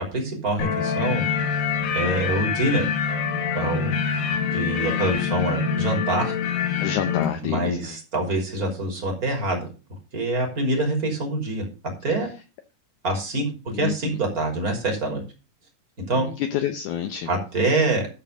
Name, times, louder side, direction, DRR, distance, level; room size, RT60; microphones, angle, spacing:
voice 1, 0.1-1.2 1.9-2.9 3.5-3.9 4.5-6.3 7.4-9.7 10.1-11.7 12.0-12.3 13.0-15.2 16.1-16.3 17.3-18.1, right 2 dB, 25° right, 1 dB, 3.4 m, -25 dB
sound 1, 0.6-7.3, left 6 dB, 90° left, 3.3 m, -25 dB
voice 2, 4.4-4.8 6.8-8.0 13.7-14.2 16.1-17.3, left 10 dB, 75° left, 7 dB, 2.1 m, -29 dB
12.5 x 4.5 x 6.5 m, 0.32 s
omnidirectional pair, 3.9 m